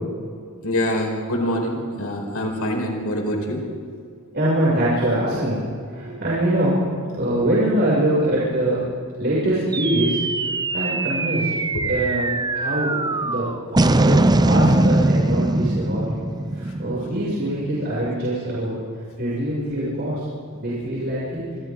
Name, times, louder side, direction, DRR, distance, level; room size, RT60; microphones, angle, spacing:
voice 1, 0.6-3.6 11.7-11.8, left 1 dB, 85° left, 0 dB, 4.9 m, -25 dB
voice 2, 4.3-8.8 9.2-10.2 10.7-11.5 11.8-14.2 14.4-16.2 16.5-18.8 19.2-20.3 20.5-21.4, right 1 dB, 50° right, -8 dB, 7.0 m, -23 dB
sound 1, 9.7-18.3, right 2 dB, 20° right, 0.6 m, -21 dB
27.5 x 26.5 x 3.9 m, 2.3 s
head